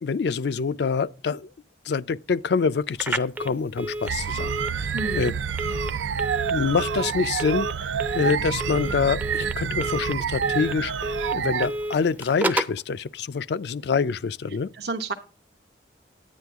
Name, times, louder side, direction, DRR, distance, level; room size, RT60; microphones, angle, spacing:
voice 1, 0.0-1.5 1.9-5.3 6.5-7.7 8.1-14.7, left 5 dB, 65° left, 0.4 m, -26 dB
Telephone, 2.9-12.8, right 1 dB, 10° right, 0.4 m, -32 dB
sound 1, 4.1-11.7, right 7 dB, 90° right, 0.4 m, -28 dB
voice 2, 4.9-5.3 14.7-15.1, right 3 dB, 65° right, 0.8 m, -30 dB
9.9 x 9.6 x 3.5 m
head